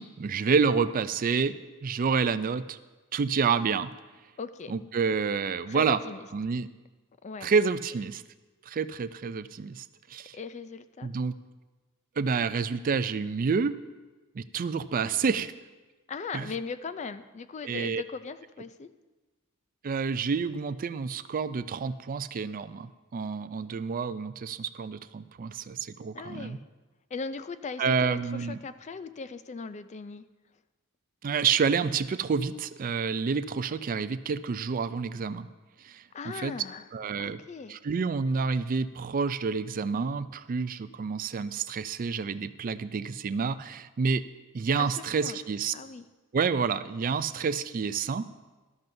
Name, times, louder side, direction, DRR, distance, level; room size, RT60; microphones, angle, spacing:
voice 1, 0.0-1.5 1.8-2.8 3.1-3.9 4.7-6.0 6.3-6.7 7.4-8.2 8.7-9.8 10.1-10.4 11.0-11.4 12.2-13.8 14.4-15.5 16.3-16.5 17.6-18.0 19.8-26.6 27.8-28.6 31.2-35.5 35.8-36.5 36.9-37.4 37.7-44.2 44.5-45.7 46.3-48.3, right 5 dB, 40° right, 13 dB, 0.4 m, -28 dB
voice 2, 4.4-4.8 5.7-6.3 7.2-7.5 10.3-11.1 16.1-18.9 26.1-26.6 27.1-30.2 36.1-36.9 37.2-37.8 44.8-45.4 45.7-46.1, left 5 dB, 30° left, 13 dB, 0.4 m, -39 dB
13.0 x 12.0 x 2.7 m, 1.2 s
head